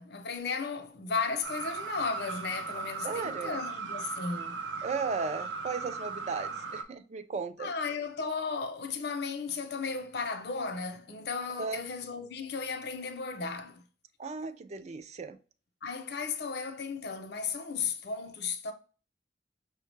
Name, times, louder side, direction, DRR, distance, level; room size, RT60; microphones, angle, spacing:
voice 1, 0.0-4.6 7.6-13.8 15.8-18.7, left 5 dB, 65° left, 0.6 m, -35 dB
sound 1, 1.4-6.8, right 5 dB, 85° right, 0.6 m, -38 dB
voice 2, 3.0-3.6 4.8-7.7 11.6-11.8 14.2-15.4, right 4 dB, 40° right, 0.4 m, -35 dB
5.5 x 2.1 x 3.2 m
head